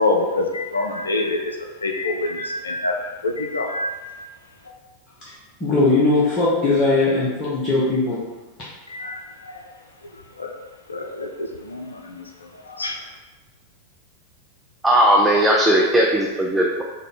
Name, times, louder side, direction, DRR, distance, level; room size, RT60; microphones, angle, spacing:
voice 1, 0.0-1.6 1.8-3.0 3.2-4.3 8.9-9.6 10.4-10.5 10.9-12.2 12.7-13.0, left 2 dB, 75° left, 2 dB, 0.4 m, -26 dB
voice 2, 5.6-8.2, left 2 dB, 25° left, -8 dB, 0.8 m, -19 dB
voice 3, 14.8-16.8, right 1 dB, 5° right, -2 dB, 0.3 m, -17 dB
3.6 x 2.1 x 3.7 m, 1.2 s
figure-of-eight pair, 90°, 0 cm